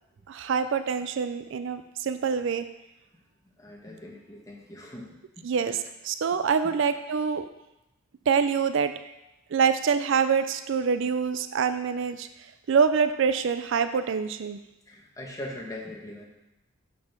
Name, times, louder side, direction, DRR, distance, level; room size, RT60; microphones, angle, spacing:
voice 1, 0.3-2.7 5.4-5.8 6.0-7.5 8.3-8.9 9.5-12.3 12.7-14.6, right 6 dB, 65° right, 11 dB, 0.4 m, -25 dB
voice 2, 3.6-5.8 14.9-16.3, left 1 dB, 15° left, -2 dB, 1.5 m, -41 dB
6.6 x 5.5 x 5.9 m, 0.93 s
head